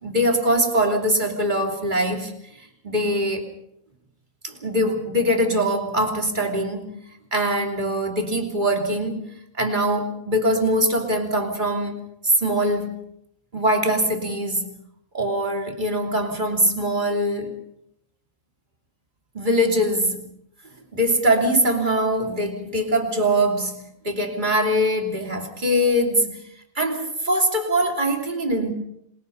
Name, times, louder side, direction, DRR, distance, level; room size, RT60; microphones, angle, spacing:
voice 1, 0.0-3.5 4.4-7.0 7.3-9.3 9.6-13.0 13.5-14.7 15.1-17.6 19.3-20.3 20.9-26.4 26.7-28.7, equal, 35° right, 3.2 m, -22 dB
27.0 x 20.5 x 5.6 m
omnidirectional pair, 1.4 m